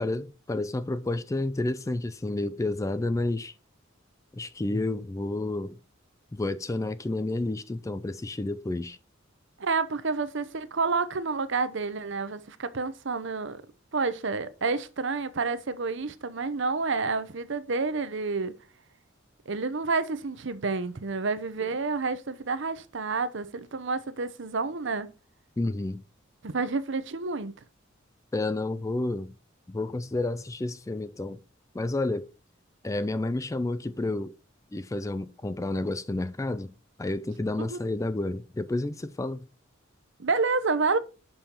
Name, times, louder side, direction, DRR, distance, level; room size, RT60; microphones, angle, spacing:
voice 1, 0.0-3.5 4.3-5.8 6.3-9.0 21.6-21.7 25.6-26.0 28.3-29.3 29.7-31.4 31.7-32.3 32.8-34.4 34.7-36.7 37.0-39.5, left 2 dB, 15° left, 0.3 m, -30 dB
voice 2, 9.6-13.6 13.9-18.5 19.5-25.1 26.4-27.5 37.6-37.8 40.2-41.0, right 4 dB, 60° right, 0.8 m, -29 dB
6.8 x 5.6 x 4.4 m
head